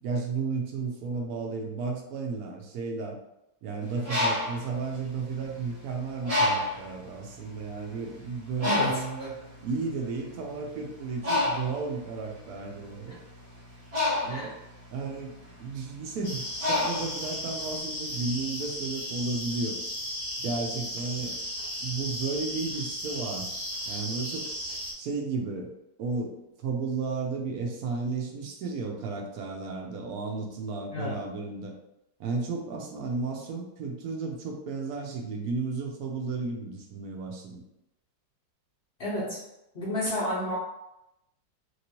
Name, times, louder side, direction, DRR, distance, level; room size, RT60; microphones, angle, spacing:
voice 1, 0.0-3.2 3.6-13.2 14.2-14.6 14.9-19.8 20.4-21.4 21.8-23.5 23.9-24.5 25.0-25.7 26.0-31.7 32.2-37.6, right 4 dB, 70° right, 1 dB, 0.9 m, -33 dB
Bird, 3.9-5.7 6.3-6.9 7.6-7.8 8.0-17.7, left 2 dB, 30° right, 0.7 m, -30 dB
voice 2, 8.6-9.3 14.3-14.5 30.9-31.2 39.0-39.4 39.7-40.6, left 1 dB, 60° left, -8 dB, 0.6 m, -31 dB
sound 1, 16.2-24.9, equal, 20° left, 0.9 m, -35 dB
3.0 x 2.9 x 2.8 m, 0.87 s
omnidirectional pair, 2.0 m